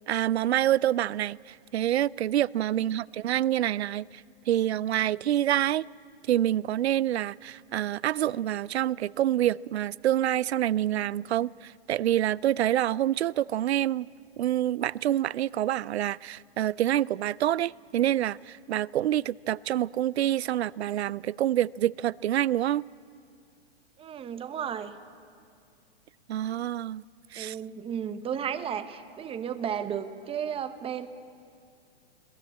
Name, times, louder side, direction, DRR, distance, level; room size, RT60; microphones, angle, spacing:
voice 1, 0.1-4.1 4.5-5.9 6.3-14.1 14.4-22.8 26.3-27.0 27.3-27.6, right 12 dB, 80° right, 0.5 m, -27 dB
voice 2, 24.0-24.9 27.3-31.1, right 8 dB, 15° right, 1.0 m, -34 dB
21.0 x 18.0 x 8.6 m
hypercardioid pair, 125°, 32 cm